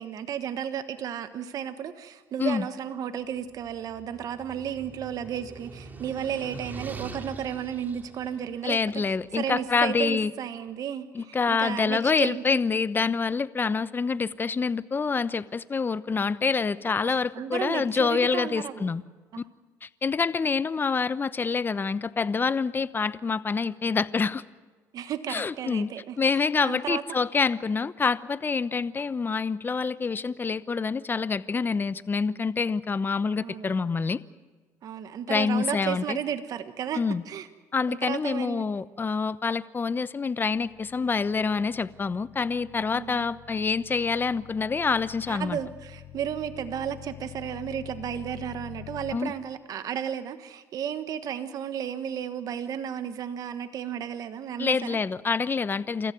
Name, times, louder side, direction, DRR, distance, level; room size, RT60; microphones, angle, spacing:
voice 1, 0.0-12.6 17.0-18.9 19.3-19.4 24.9-27.0 33.4-33.8 34.8-37.5 37.9-38.7 42.9-43.3 45.3-55.0, right 9 dB, 60° right, 10 dB, 1.3 m, -33 dB
sound 1, 3.4-9.7, right 3 dB, 25° right, 2.7 m, -43 dB
voice 2, 8.6-10.3 11.2-19.0 19.8-24.4 25.3-25.9 26.2-34.2 35.3-36.2 37.0-37.2 37.7-45.6 49.1-49.3 54.6-56.1, left 5 dB, 30° left, 16 dB, 0.9 m, -26 dB
sound 2, 40.5-49.2, left 13 dB, 85° left, 4.1 m, -47 dB
28.5 x 14.5 x 9.3 m, 1.4 s
supercardioid pair, 80°, 7 cm